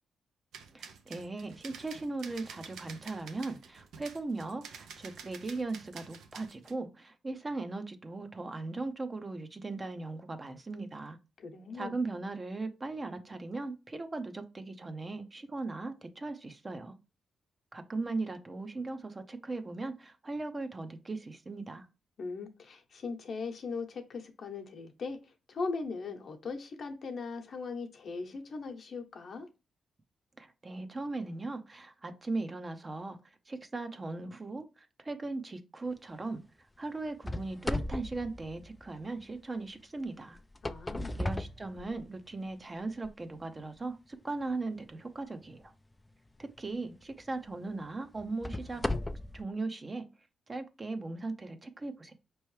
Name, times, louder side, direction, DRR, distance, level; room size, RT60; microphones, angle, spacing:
sound 1, 0.5-6.7, right 6 dB, 80° right, 0.5 m, -49 dB
voice 1, 0.7-11.2 11.7-17.0 17.7-21.9 30.4-33.2 33.5-36.4 36.8-40.4 41.1-45.7 46.4-48.8 49.3-50.1 50.5-52.1, right 3 dB, 30° right, 0.7 m, -38 dB
voice 2, 11.4-11.9 22.2-29.5 40.6-41.2, left 4 dB, 60° left, 0.9 m, -39 dB
sound 2, 37.2-39.2 40.4-42.3 43.0-43.1 43.8-43.9 46.5-46.7 47.2-47.3 48.2-49.4, left 1 dB, 15° left, 0.4 m, -36 dB
4.4 x 3.1 x 3.2 m
supercardioid pair, 60°, 0 cm